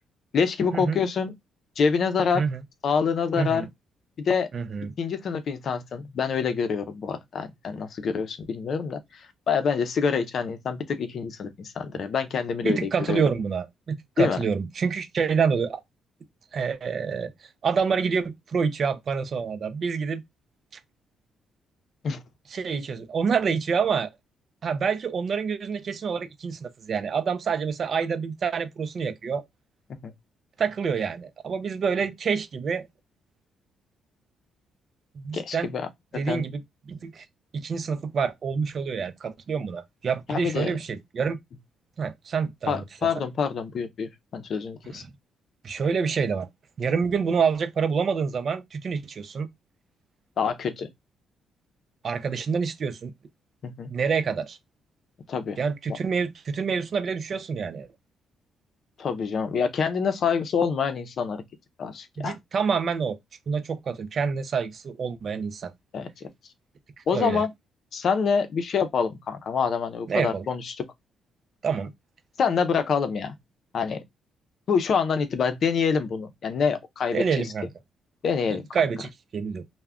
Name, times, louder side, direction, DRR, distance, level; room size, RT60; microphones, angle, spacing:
voice 1, 0.3-1.3 1.8-2.4 2.8-3.7 4.2-4.5 5.0-9.0 9.5-13.2 14.2-14.4 22.0-22.2 30.0-30.1 35.3-35.9 36.3-36.4 40.3-40.7 42.7-45.0 50.4-50.9 53.6-53.9 55.3-55.6 55.9-56.0 59.0-61.4 61.8-62.3 65.9-66.3 67.1-67.5 67.9-70.8 72.4-73.3 73.7-74.0 74.7-77.5 78.2-78.6, left 6 dB, 60° left, 0.5 m, -26 dB
voice 2, 4.5-4.9 12.6-15.8 16.5-17.3 17.6-20.2 22.5-24.1 24.6-29.5 30.6-32.9 35.2-35.7 36.1-36.6 36.9-37.3 37.5-41.4 42.0-42.8 43.1-43.2 44.9-45.1 45.6-46.5 46.8-49.5 52.0-53.1 53.9-54.6 55.6-57.9 62.2-63.2 63.5-65.7 67.1-67.4 70.1-70.5 71.6-71.9 77.1-77.7 78.5-79.6, right 6 dB, 50° right, 0.4 m, -27 dB
2.3 x 2.1 x 3.5 m
cardioid pair, 90°, 0 cm